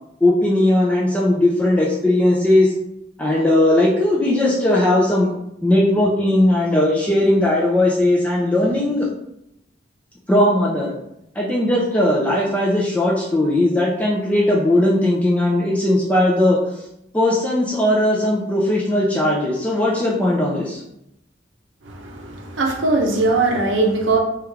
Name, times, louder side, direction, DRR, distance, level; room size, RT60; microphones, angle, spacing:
voice 1, 0.2-2.7 3.2-5.3 5.6-9.1 10.3-10.9 11.4-16.6 17.1-20.8, left 1 dB, 10° left, -4 dB, 0.4 m, -18 dB
voice 2, 21.8-24.2, right 3 dB, 85° right, 1 dB, 0.6 m, -20 dB
3.2 x 2.3 x 3.3 m, 0.80 s
head